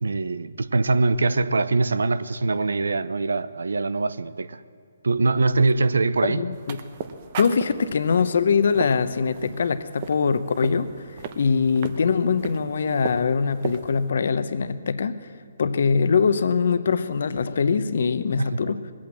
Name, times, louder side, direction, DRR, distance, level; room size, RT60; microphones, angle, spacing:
voice 1, 0.0-4.6 5.0-6.4 18.4-18.6, right 3 dB, 85° right, 0.7 m, -23 dB
voice 2, 6.2-6.8 7.4-10.9 11.4-15.2 15.6-18.8, left 5 dB, 65° left, 0.8 m, -22 dB
sound 1, 6.5-14.1, right 7 dB, 35° right, 0.8 m, -37 dB
20.5 x 8.5 x 7.6 m
hypercardioid pair, 155°, 0 cm